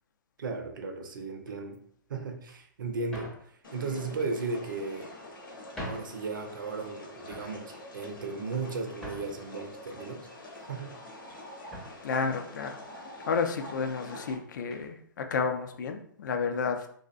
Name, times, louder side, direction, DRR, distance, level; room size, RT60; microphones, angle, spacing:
voice 1, 0.4-1.8 2.1-5.1 5.8-10.3 10.6-10.9, right 4 dB, 70° right, 4 dB, 0.5 m, -36 dB
sound 1, 1.4-1.8 2.5-2.6 3.1-3.5 4.4-5.0 5.5-5.6 5.8-6.2 6.6-7.0 7.2-7.6 8.2-9.5 10.1-10.9 11.2-11.4 11.7-12.0 12.8-12.9 13.3-13.4 14.7-14.9, equal, 5° left, 0.5 m, -44 dB
sound 2, 3.6-14.4, left 1 dB, 80° left, 0.8 m, -46 dB
voice 2, 12.0-12.8 13.3-16.9, left 5 dB, 60° left, 5 dB, 0.4 m, -31 dB
2.5 x 2.0 x 2.4 m, 0.63 s
hypercardioid pair, 125°, 11 cm